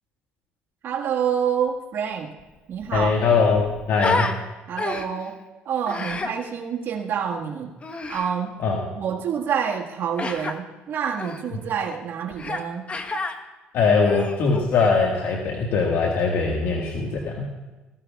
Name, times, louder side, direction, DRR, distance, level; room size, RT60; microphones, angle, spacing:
voice 1, 0.8-2.3 2.7-3.1 4.1-4.2 4.7-5.4 5.7-7.7 8.1-8.5 9.0-12.9, right 7 dB, 55° right, -1 dB, 1.7 m, -27 dB
Human voice, 2.4-2.5 2.7-4.4 4.8-5.3 5.9-6.3 7.8-8.3 10.2-10.5 11.2-11.4 12.4-12.6 12.9-13.4 13.9-15.0, left 3 dB, 30° left, 1.2 m, -29 dB
voice 2, 2.9-4.3 8.6-8.8 13.7-17.5, left 4 dB, 70° left, -1 dB, 1.7 m, -21 dB
19.5 x 15.0 x 2.4 m, 1.2 s
supercardioid pair, 85°, 4 cm